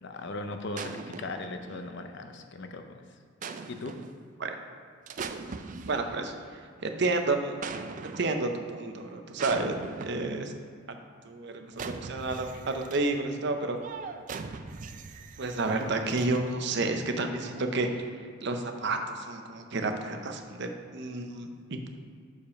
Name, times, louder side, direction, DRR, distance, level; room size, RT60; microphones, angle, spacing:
voice 1, 0.0-3.0 3.7-3.9, left 2 dB, 60° left, 6 dB, 0.6 m, -38 dB
sound 1, 0.7-2.2 3.4-4.2 5.1-6.5 7.6-8.6 9.4-10.4 11.7-13.2 13.8-16.7 17.6-18.0, right 4 dB, 40° right, 0.4 m, -41 dB
voice 2, 5.8-6.3 6.8-7.5 8.0-10.5 10.9-11.0 11.3-13.8 15.4-17.9 18.4-21.9, right 2 dB, 60° right, 5 dB, 0.7 m, -30 dB
6.9 x 5.0 x 5.2 m, 2.2 s
head